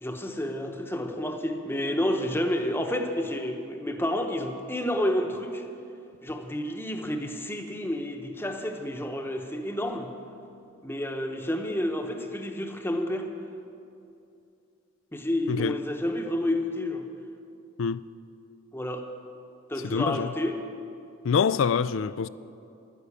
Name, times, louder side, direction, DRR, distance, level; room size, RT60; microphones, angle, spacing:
voice 1, 0.0-5.6 6.2-10.1 10.8-13.3 15.1-17.1 18.7-19.0 19.7-20.6, left 1 dB, 10° left, 0.9 m, -30 dB
voice 2, 19.8-20.3 21.2-22.3, left 6 dB, 65° left, 0.4 m, -25 dB
12.0 x 10.0 x 8.3 m
head